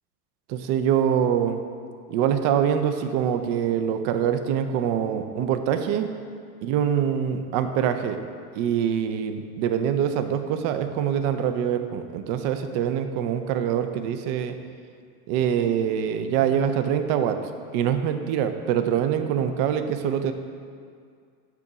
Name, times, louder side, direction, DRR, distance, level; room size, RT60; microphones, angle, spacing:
voice 1, 0.5-1.6 2.1-6.1 6.6-8.2 8.5-14.6 15.3-17.4 17.7-20.3, right 9 dB, 35° right, 8 dB, 0.4 m, -24 dB
8.2 x 2.8 x 4.6 m, 2.2 s
hypercardioid pair, 100°, 46 cm